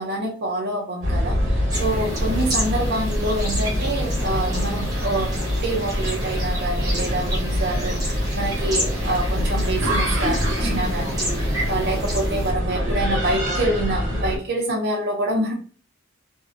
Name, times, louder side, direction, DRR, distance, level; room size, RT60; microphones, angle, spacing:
voice 1, 0.0-5.3 5.6-15.5, right 1 dB, 55° right, -1 dB, 0.5 m, -26 dB
sound 1, 1.0-14.4, equal, 70° right, 1.2 m, -24 dB
sound 2, 1.7-12.5, equal, 20° right, 0.7 m, -32 dB
2.6 x 2.0 x 2.5 m, 0.40 s
head